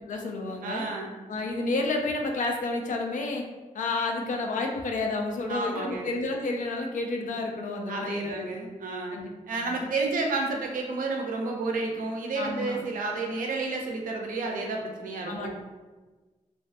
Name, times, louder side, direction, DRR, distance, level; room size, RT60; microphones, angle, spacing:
voice 1, 0.1-0.8 1.3-3.5 3.7-8.5 9.1-9.3 9.6-9.7 12.3-12.8 15.3-15.5, left 3 dB, 70° left, 2 dB, 0.4 m, -30 dB
voice 2, 0.6-1.1 5.5-6.1 7.9-9.2 9.5-15.5, right 3 dB, 90° right, 1 dB, 0.4 m, -31 dB
2.5 x 2.3 x 2.4 m, 1.3 s
cardioid pair, 80°, 14 cm